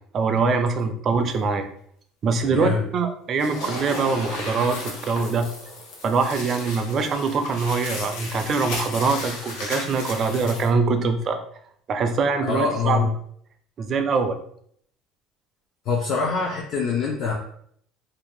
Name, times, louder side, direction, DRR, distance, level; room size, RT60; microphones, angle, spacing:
voice 1, 0.1-1.7 2.2-5.5 6.0-11.4 11.9-13.1 13.8-14.4, right 4 dB, 35° right, 7 dB, 0.3 m, -23 dB
voice 2, 2.4-2.8 12.5-13.1 15.9-17.3, left 5 dB, 50° left, -1 dB, 0.4 m, -24 dB
sound 1, 3.3-10.7, left 2 dB, 85° left, 0.7 m, -35 dB
2.6 x 2.1 x 3.1 m, 0.64 s
cardioid pair, 135°, 0 cm